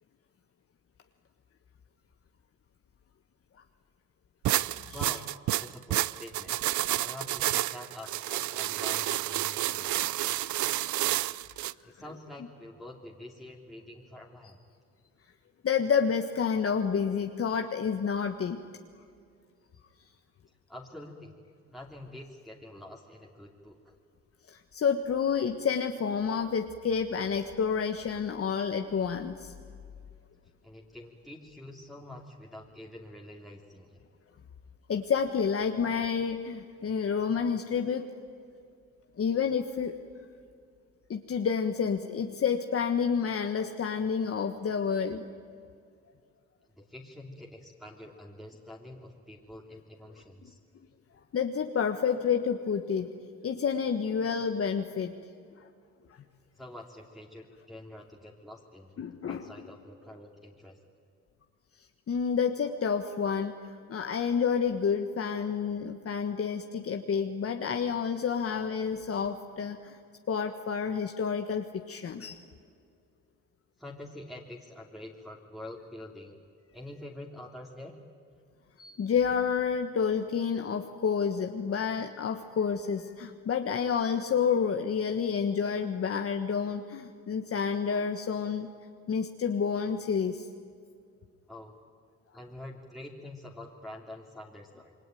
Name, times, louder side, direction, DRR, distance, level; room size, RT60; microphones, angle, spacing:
sound 1, 4.4-11.7, right 15 dB, 70° right, 0.6 m, -30 dB
voice 1, 4.9-5.3 5.6-6.6 7.0-9.9 11.8-14.6 20.7-21.3 21.7-23.9 30.6-33.9 46.8-50.6 56.6-59.0 59.3-60.8 73.8-76.4 76.7-77.9 91.5-91.8 92.3-95.0, left 1 dB, ahead, -2 dB, 3.0 m, -46 dB
voice 2, 15.6-18.6 24.5-29.5 34.9-38.1 39.2-40.0 41.1-45.3 51.3-53.1 53.4-55.1 55.6-55.7 59.0-59.5 62.1-63.5 63.9-70.0 70.3-72.4 78.8-88.7 89.1-90.4, left 6 dB, 50° left, 5 dB, 1.5 m, -29 dB
28.0 x 22.0 x 9.4 m, 2.3 s
cardioid pair, 90°, 30 cm